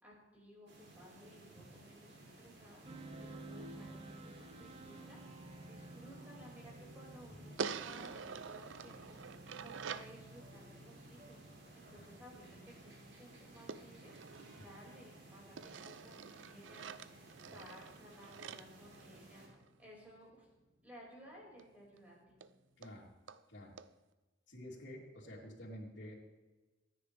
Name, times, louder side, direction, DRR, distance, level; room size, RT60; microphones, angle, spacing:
voice 1, 0.0-2.9 3.2-5.2 5.7-9.3 9.6-11.5 11.7-14.1 14.6-17.0 17.5-19.5 19.8-20.5 20.8-22.4, equal, 10° right, -5 dB, 5.8 m, -57 dB
sound 1, 0.7-19.5, right 2 dB, 70° right, 3.6 m, -58 dB
sound 2, 2.9-22.8, right 1 dB, 30° right, 1.2 m, -56 dB
sound 3, 7.6-10.2 13.7-15.1 15.6-19.7 21.6-21.7 22.0-22.1 22.4-22.5 22.8-22.9 23.3-23.4 23.8-23.9, right 6 dB, 85° right, 0.6 m, -46 dB
voice 2, 22.8-23.1 23.5-23.8 24.5-26.1, equal, 70° left, -3 dB, 3.8 m, -50 dB
25.0 x 10.0 x 3.5 m, 1.2 s
head